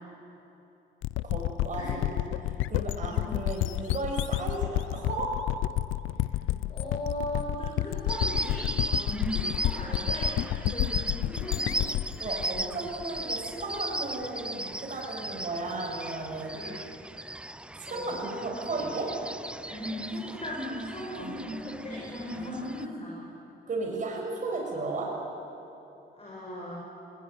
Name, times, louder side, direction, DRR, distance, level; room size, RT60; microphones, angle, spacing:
sound 1, 1.0-13.6, left 15 dB, 85° left, 0.5 m, -30 dB
voice 1, 1.2-2.3 2.7-5.3 12.2-16.5 17.8-19.1 21.2-21.3 22.3-22.4 23.7-25.1, right 3 dB, 40° right, -1 dB, 6.2 m, -34 dB
voice 2, 6.7-11.9 16.6-17.0 17.9-18.1 19.7-23.3 26.1-26.8, equal, 30° left, -4 dB, 7.2 m, -37 dB
sound 2, 8.1-22.8, right 1 dB, 5° right, 0.5 m, -37 dB
21.0 x 19.5 x 9.4 m, 2.9 s
cardioid pair, 90°, 20 cm